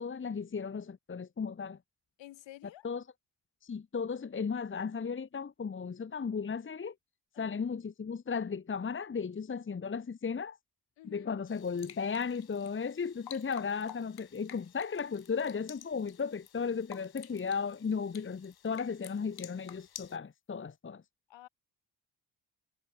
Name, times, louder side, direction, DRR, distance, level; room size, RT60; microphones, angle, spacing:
voice 1, 0.0-1.8 2.8-3.0 3.6-6.9 7.4-10.6 11.1-21.0, left 5 dB, 25° left, 1.1 m, -35 dB
voice 2, 2.2-2.9 7.3-7.6 11.0-11.3 21.3-21.5, left 15 dB, 75° left, 6.3 m, -51 dB
sound 1, 11.5-20.2, left 10 dB, 55° left, 1.6 m, -52 dB
hypercardioid pair, 50°, 45 cm